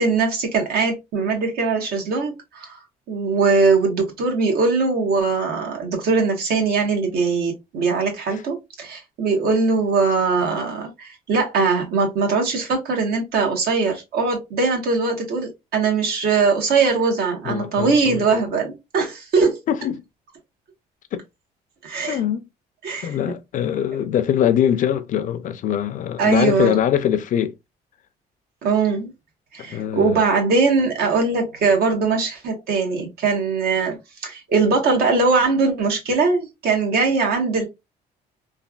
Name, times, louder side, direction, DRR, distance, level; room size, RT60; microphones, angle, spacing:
voice 1, 0.0-2.8 3.1-19.6 21.8-22.2 22.8-23.2 26.2-26.8 28.6-29.1 29.5-34.0 34.2-37.6, right 4 dB, 65° right, 1.2 m, -21 dB
voice 2, 17.4-18.4 19.7-20.0 21.1-21.2 22.1-22.4 23.0-27.5 29.6-30.2, left 9 dB, 50° left, 0.4 m, -22 dB
3.2 x 2.3 x 2.3 m
cardioid pair, 110°, 17 cm